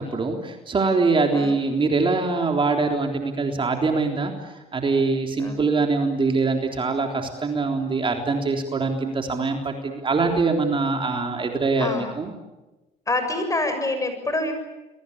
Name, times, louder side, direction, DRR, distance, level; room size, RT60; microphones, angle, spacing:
voice 1, 0.0-4.3 4.7-12.3, right 3 dB, 30° right, 3 dB, 3.6 m, -23 dB
voice 2, 5.4-5.9 11.8-12.2 13.1-14.5, left 2 dB, 20° left, 7 dB, 6.8 m, -27 dB
30.0 x 22.5 x 8.6 m, 1.1 s
cardioid pair, 110°, 17 cm